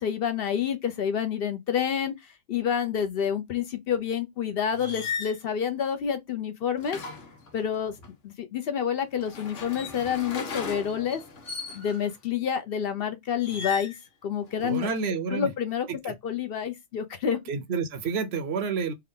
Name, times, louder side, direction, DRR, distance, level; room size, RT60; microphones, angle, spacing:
voice 1, 0.0-7.0 7.5-7.9 8.2-11.2 11.7-14.0 14.2-14.9 15.3-17.4, left 8 dB, 60° left, 0.7 m, -28 dB
sound 1, 4.7-5.4 6.8-8.1 9.1-12.1 13.4-14.0 14.5-15.0, left 5 dB, 90° left, 1.3 m, -37 dB
voice 2, 14.6-15.5 16.0-16.1 17.5-18.9, right 5 dB, 65° right, 0.8 m, -29 dB
3.4 x 2.2 x 3.6 m
omnidirectional pair, 1.2 m